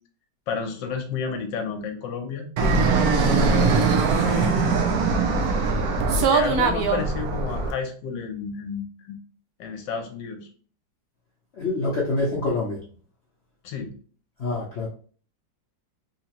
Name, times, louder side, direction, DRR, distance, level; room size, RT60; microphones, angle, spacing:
voice 1, 0.5-2.5 3.2-4.8 6.3-9.2 9.6-10.5 13.6-13.9, left 5 dB, 80° left, 5 dB, 1.3 m, -31 dB
Fixed-wing aircraft airplane, 2.6-7.7, right 4 dB, 70° right, 0.9 m, -21 dB
voice 2, 11.6-12.8 14.4-14.9, left 2 dB, 60° left, -3 dB, 0.7 m, -25 dB
3.8 x 2.9 x 2.9 m, 0.43 s
omnidirectional pair, 2.0 m